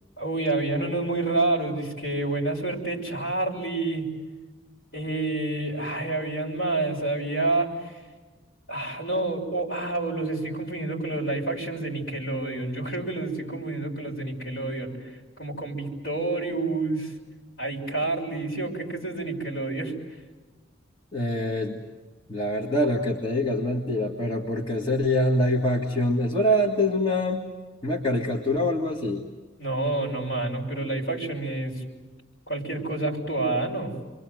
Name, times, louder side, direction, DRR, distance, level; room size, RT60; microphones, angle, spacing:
voice 1, 0.2-4.1 4.9-7.9 8.7-14.9 15.4-17.1 17.6-19.9 29.6-31.7 32.5-33.9, right 2 dB, 55° left, -1 dB, 6.6 m, -28 dB
voice 2, 21.1-21.8 22.3-27.5 27.8-29.3, left 1 dB, 25° left, -1 dB, 1.9 m, -25 dB
29.0 x 23.5 x 7.9 m, 1.3 s
head